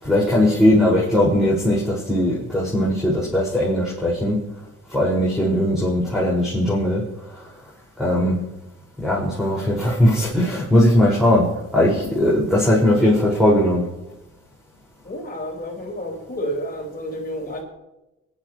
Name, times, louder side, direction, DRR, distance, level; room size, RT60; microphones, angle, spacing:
voice 1, 0.0-4.4 4.9-7.5 8.0-8.4 9.0-13.8, left 1 dB, ahead, -6 dB, 5.4 m, -19 dB
voice 2, 15.0-17.6, equal, 30° left, -1 dB, 5.0 m, -30 dB
21.5 x 12.0 x 3.2 m, 0.92 s
cardioid pair, 90°, 30 cm